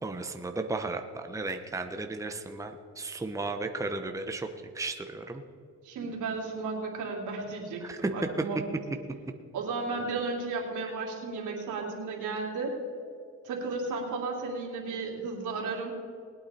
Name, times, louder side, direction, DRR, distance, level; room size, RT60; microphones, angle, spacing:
voice 1, 0.0-4.5 4.7-5.4 7.8-8.1 10.8-10.9, right 3 dB, 10° right, 6 dB, 0.9 m, -34 dB
voice 2, 5.8-8.6 9.5-12.7 13.4-15.9, right 3 dB, 80° right, -1 dB, 2.9 m, -34 dB
20.0 x 8.7 x 4.3 m, 2.3 s
cardioid pair, 90°, 30 cm